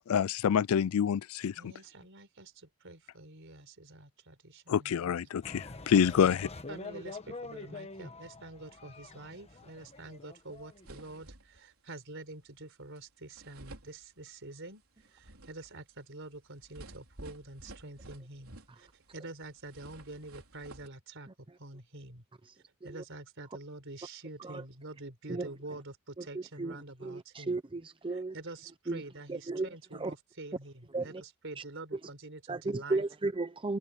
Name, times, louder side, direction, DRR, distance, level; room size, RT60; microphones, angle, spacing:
voice 1, 0.1-1.7 4.7-6.4, left 7 dB, 85° left, 0.4 m, -27 dB
voice 2, 1.5-5.1 5.8-5.9 6.2-6.4 6.7-14.8 15.1-21.3 21.6-22.2 22.8-27.6 28.1-33.0, right 2 dB, 65° right, 4.4 m, -47 dB
sound 1, 5.4-11.1, left 3 dB, 30° left, 1.3 m, -45 dB
sound 2, 10.2-10.3 10.5-11.7 13.0-13.1 13.3-14.6 15.0-19.1 19.4-20.9, right 1 dB, 85° right, 4.0 m, -52 dB
voice 3, 26.2-26.8 27.0-28.3 28.9-29.0 29.3-30.1 30.9-31.2 32.5-33.8, right 3 dB, 25° right, 0.7 m, -34 dB
head